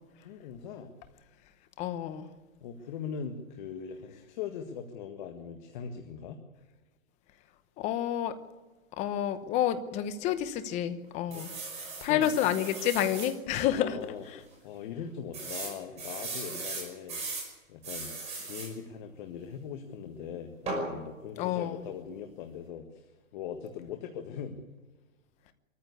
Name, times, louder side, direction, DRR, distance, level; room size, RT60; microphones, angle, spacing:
voice 1, 0.2-0.9 2.6-6.4 11.3-11.5 11.9-12.3 13.6-14.2 14.6-17.2 17.7-24.6, left 7 dB, 35° left, 5 dB, 1.7 m, -40 dB
voice 2, 1.8-2.3 7.8-8.3 9.0-11.5 12.0-14.0 14.3-14.4 21.4-21.8, left 10 dB, 15° left, 11 dB, 0.9 m, -29 dB
sound 1, 11.3-13.3 13.9-14.0 14.2-14.3 15.3-17.5 17.8-18.7 20.7-20.9, right 3 dB, 15° right, 5.9 m, -38 dB
23.5 x 14.5 x 8.4 m, 1.2 s
hypercardioid pair, 160°, 40 cm